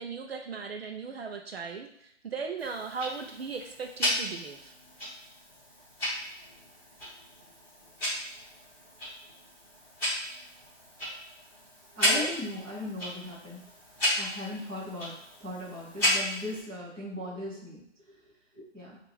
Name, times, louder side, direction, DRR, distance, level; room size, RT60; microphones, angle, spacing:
voice 1, 0.0-4.7 12.0-12.3, right 5 dB, 55° right, 5 dB, 0.6 m, -37 dB
Tick-tock, 2.6-16.6, equal, 5° left, 1.4 m, -34 dB
voice 2, 11.9-13.6 14.1-15.1 15.4-17.8 18.5-19.0, left 2 dB, 10° right, -8 dB, 0.7 m, -38 dB
5.8 x 2.5 x 3.4 m, 0.76 s
hypercardioid pair, 155°, 37 cm